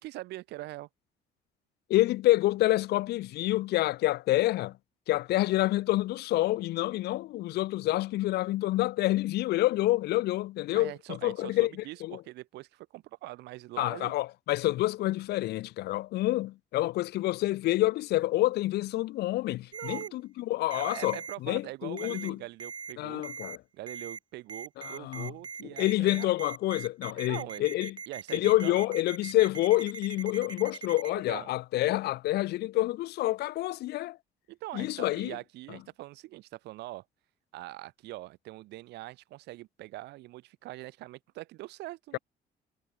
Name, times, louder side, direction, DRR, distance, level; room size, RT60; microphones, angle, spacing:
voice 1, 0.0-0.9 10.7-14.1 19.7-20.2 20.7-23.3 23.7-26.3 27.1-27.7 28.1-28.8 31.3-31.5 34.5-37.1 37.5-42.2, right 18 dB, 85° right, 5.7 m, -43 dB
voice 2, 1.9-4.8 5.1-11.7 12.0-12.2 13.8-22.4 23.0-23.6 24.8-25.3 25.8-28.0 28.3-34.2 34.7-35.3, left 16 dB, 75° left, 0.8 m, -28 dB
Ringtone, 19.7-20.1 20.7-21.4 22.0-22.3 22.6-22.9 23.2-23.6 23.9-24.2 24.5-31.1, right 5 dB, 25° right, 1.0 m, -41 dB
cardioid pair, 110°, 17 cm